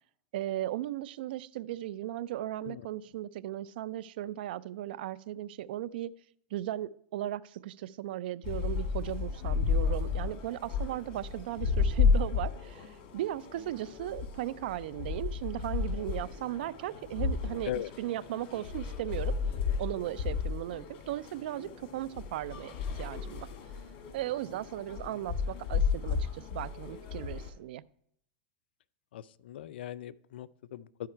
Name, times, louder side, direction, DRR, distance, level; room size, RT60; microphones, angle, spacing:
voice 1, 0.3-6.1 6.5-17.7 18.0-19.3 19.8-23.5 24.1-27.8, right 13 dB, 70° right, 19 dB, 0.4 m, -37 dB
sound 1, 8.4-27.5, left 5 dB, 50° left, 1.7 m, -33 dB
voice 2, 29.1-31.1, left 12 dB, 80° left, 17 dB, 0.4 m, -39 dB
12.5 x 4.7 x 4.4 m, 0.69 s
hypercardioid pair, 125°, 6 cm